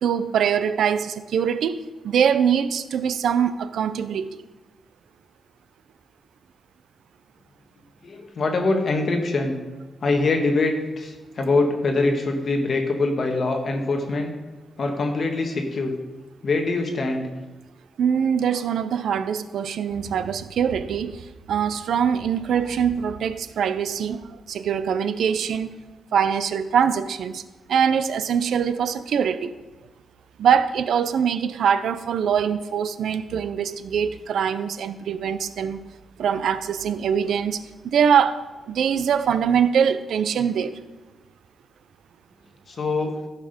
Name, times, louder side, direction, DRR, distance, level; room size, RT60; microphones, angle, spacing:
voice 1, 0.0-4.4 18.0-25.8 26.1-27.4 27.7-29.6 30.4-35.8 36.2-38.4 38.7-40.8, right 7 dB, 80° right, 0.5 m, -23 dB
voice 2, 8.0-9.6 10.0-14.3 14.8-15.9 16.4-17.3 42.7-43.1, left 3 dB, 40° left, 1.5 m, -23 dB
15.0 x 5.8 x 5.2 m
wide cardioid pair, 170°, 0 cm